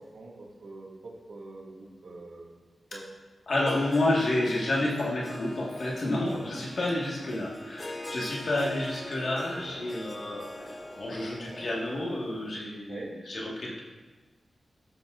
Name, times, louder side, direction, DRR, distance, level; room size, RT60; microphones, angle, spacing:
voice 1, 0.0-2.6 2.9-3.1 6.2-6.5 7.2-7.5 12.9-13.1, right 2 dB, 80° right, -4 dB, 2.0 m, -44 dB
voice 2, 3.5-13.8, left 1 dB, 55° left, -3 dB, 1.6 m, -30 dB
Harp, 3.5-12.5, left 2 dB, 30° left, 0.5 m, -43 dB
sound 1, 6.1-12.2, equal, ahead, 1.2 m, -47 dB
12.0 x 8.2 x 2.5 m, 1.2 s
wide cardioid pair, 130°, 0 cm